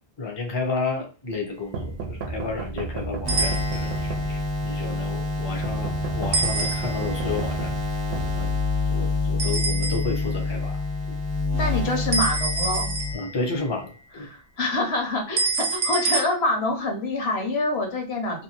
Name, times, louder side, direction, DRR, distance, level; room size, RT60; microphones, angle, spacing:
voice 1, 0.2-7.8 8.1-8.6 8.9-10.8 11.1-11.2 13.1-14.3, left 3 dB, 30° left, 2 dB, 0.7 m, -32 dB
sound 1, 1.7-4.7 5.6-9.0, right 3 dB, 70° right, 0.8 m, -33 dB
sound 2, 3.2-13.1, left 3 dB, 25° right, 0.7 m, -27 dB
sound 3, 3.3-4.1 6.3-7.2 9.4-10.3 12.1-13.5 15.4-16.2, right 4 dB, 45° right, 0.3 m, -27 dB
voice 2, 11.5-12.9 14.2-18.4, left 2 dB, 75° left, 2 dB, 1.0 m, -26 dB
2.7 x 2.2 x 2.8 m, 0.35 s
omnidirectional pair, 1.1 m